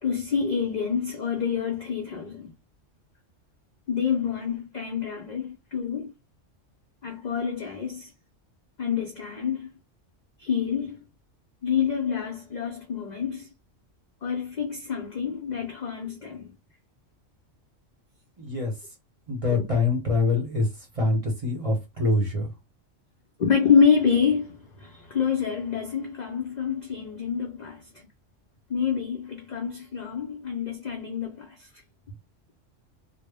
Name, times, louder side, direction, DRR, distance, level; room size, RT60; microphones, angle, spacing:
voice 1, 0.0-2.5 3.9-6.1 7.0-8.1 8.8-9.7 10.4-11.0 11.6-13.5 14.2-16.5 19.5-19.6 23.4-27.8 28.7-31.7, left 6 dB, 60° left, 0.4 m, -27 dB
voice 2, 18.4-18.9 19.3-22.5, left 3 dB, 35° right, 0.7 m, -25 dB
2.1 x 2.0 x 3.3 m
omnidirectional pair, 1.3 m